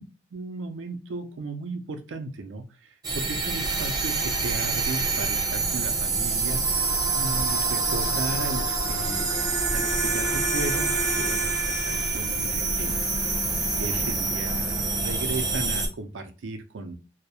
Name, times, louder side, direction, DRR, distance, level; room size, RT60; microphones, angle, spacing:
voice 1, 0.3-2.6 3.1-9.3 9.7-12.9 13.8-16.9, right 3 dB, 90° right, 7 dB, 0.4 m, -35 dB
sound 1, 3.0-15.9, right 3 dB, 20° right, 0.4 m, -26 dB
2.3 x 2.0 x 2.7 m, 0.32 s
head